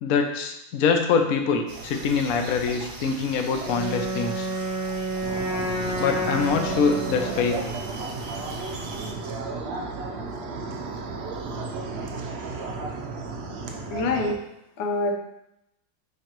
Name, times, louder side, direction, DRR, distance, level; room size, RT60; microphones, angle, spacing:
voice 1, 0.0-4.5 6.0-7.6, left 5 dB, 65° left, 4 dB, 1.0 m, -24 dB
sound 1, 1.7-9.1, right 3 dB, 55° right, 1.0 m, -40 dB
Wind instrument woodwind instrument, 3.6-7.6, right 2 dB, 5° right, 0.4 m, -30 dB
sound 2, 5.2-14.3, right 3 dB, 90° right, 0.5 m, -34 dB
voice 2, 13.9-14.4 14.8-15.1, left 3 dB, 90° left, 3 dB, 1.5 m, -25 dB
9.7 x 3.3 x 3.0 m, 0.82 s
omnidirectional pair, 1.9 m